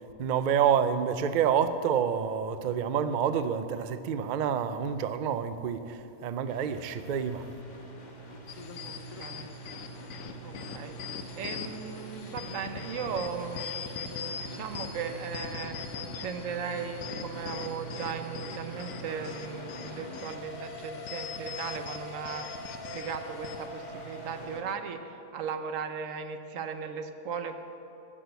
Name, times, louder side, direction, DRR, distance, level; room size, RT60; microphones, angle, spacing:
voice 1, 0.2-7.4, right 8 dB, 85° right, 11 dB, 0.4 m, -28 dB
sound 1, 6.5-24.6, right 1 dB, 35° left, 1.2 m, -43 dB
sound 2, 8.5-23.7, left 7 dB, 70° left, 1.0 m, -42 dB
voice 2, 8.8-9.5 10.4-15.9 16.2-22.7 22.9-27.6, right 6 dB, 65° right, 8 dB, 1.1 m, -37 dB
13.5 x 6.3 x 8.0 m, 2.9 s
omnidirectional pair, 1.5 m